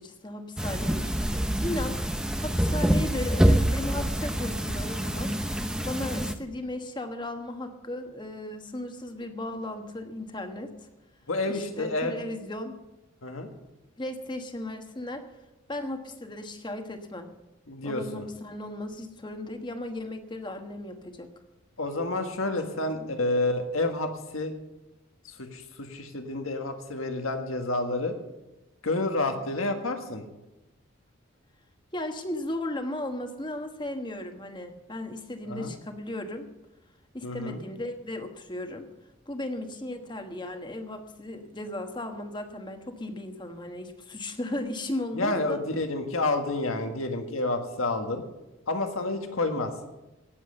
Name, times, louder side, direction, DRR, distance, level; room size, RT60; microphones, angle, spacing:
voice 1, 0.0-2.0 2.4-5.3 5.8-10.9 11.5-12.7 14.0-15.2 15.7-17.3 17.8-21.3 22.4-23.2 31.9-36.5 37.1-38.9 39.3-45.6, left 1 dB, 20° left, 6 dB, 1.2 m, -36 dB
sound 1, 0.6-6.3, equal, 5° right, 0.6 m, -26 dB
voice 2, 11.3-12.1 13.2-13.5 17.7-18.2 21.8-24.5 25.4-28.1 28.8-30.3 35.5-35.7 37.2-37.6 45.1-48.2 48.7-49.7, left 2 dB, 85° left, 5 dB, 1.6 m, -29 dB
18.0 x 7.6 x 6.6 m, 1.0 s
head